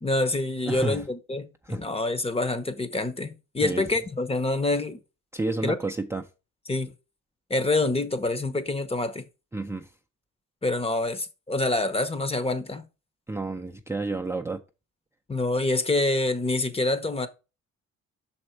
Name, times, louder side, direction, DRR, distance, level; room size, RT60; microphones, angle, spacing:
voice 1, 0.0-5.0 5.6-5.8 6.7-6.9 7.5-9.3 10.6-12.9 15.3-17.3, left 2 dB, 20° left, 0.9 m, -26 dB
voice 2, 0.7-1.0 1.6-1.8 3.6-3.8 5.3-6.2 9.5-9.9 13.3-14.6, right 2 dB, 10° right, 0.5 m, -30 dB
6.1 x 4.4 x 4.5 m
cardioid pair, 90°, 30 cm